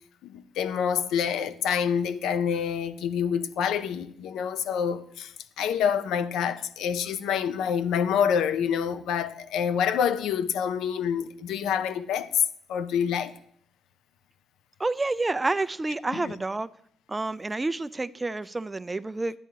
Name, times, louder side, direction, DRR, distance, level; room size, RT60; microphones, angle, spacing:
voice 1, 0.2-12.4 12.7-13.3 16.1-16.3, left 8 dB, 85° left, 0.6 m, -27 dB
voice 2, 14.8-16.7 17.1-19.4, right 2 dB, 20° right, 0.3 m, -29 dB
11.0 x 10.0 x 2.8 m
cardioid pair, 90°, 0 cm